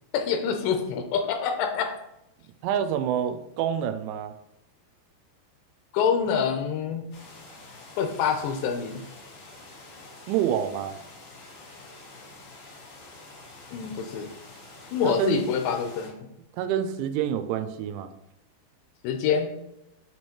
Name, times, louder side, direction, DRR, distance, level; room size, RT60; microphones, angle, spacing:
voice 1, 0.1-2.0 5.9-7.1 8.0-9.0 13.7-14.3 14.9-16.3 19.0-19.5, left 6 dB, 85° left, 5 dB, 2.9 m, -26 dB
voice 2, 2.6-4.3 10.3-10.9 15.0-15.4 16.6-18.1, right 9 dB, 85° right, 9 dB, 2.8 m, -27 dB
sound 1, 7.1-16.1, left 2 dB, 60° left, 3.9 m, -47 dB
8.3 x 3.1 x 4.3 m, 0.85 s
omnidirectional pair, 5.0 m